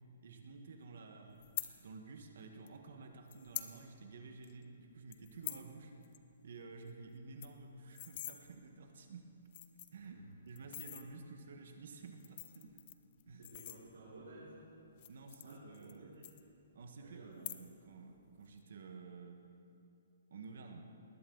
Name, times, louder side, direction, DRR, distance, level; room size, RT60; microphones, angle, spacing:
voice 1, 0.2-1.4 1.8-5.9 6.4-9.4 9.9-12.8 13.3-13.4 15.1-16.2 16.7-19.5 20.3-20.9, right 4 dB, 55° right, 4 dB, 1.5 m, -52 dB
sound 1, 1.4-1.7 2.7-2.8 3.3-3.7 4.1-4.2 4.4-4.7 5.1-5.7 6.0-6.2 6.5-6.6 6.9-7.0 7.2-8.4 9.0-9.1 9.5-10.1 10.6-11.0 12.0-14.2 14.9-16.0 16.2-16.9 17.3-17.9 18.2-18.6, left 14 dB, 25° left, 0.6 m, -45 dB
voice 2, 13.3-14.7 15.4-16.3 17.0-17.5, right 2 dB, 90° right, -9 dB, 4.3 m, -55 dB
20.0 x 18.5 x 4.0 m, 2.7 s
hypercardioid pair, 180°, 0 cm